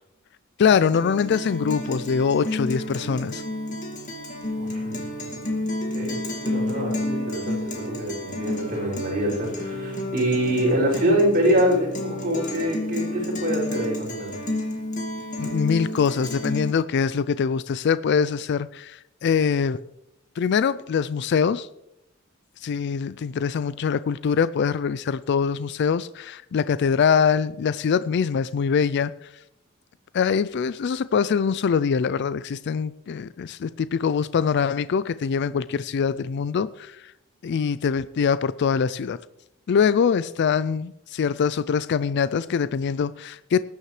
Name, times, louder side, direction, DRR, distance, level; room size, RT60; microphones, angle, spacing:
voice 1, 0.6-3.4 15.4-19.8 20.4-21.7 22.6-29.3 30.1-37.1 37.4-39.2 39.7-43.6, left 6 dB, 55° left, 0.4 m, -23 dB
Guitar, 0.7-16.7, left 1 dB, 40° left, 2.0 m, -31 dB
voice 2, 4.5-6.2 6.4-14.4, equal, 45° right, 5.5 m, -25 dB
20.0 x 9.5 x 3.2 m
head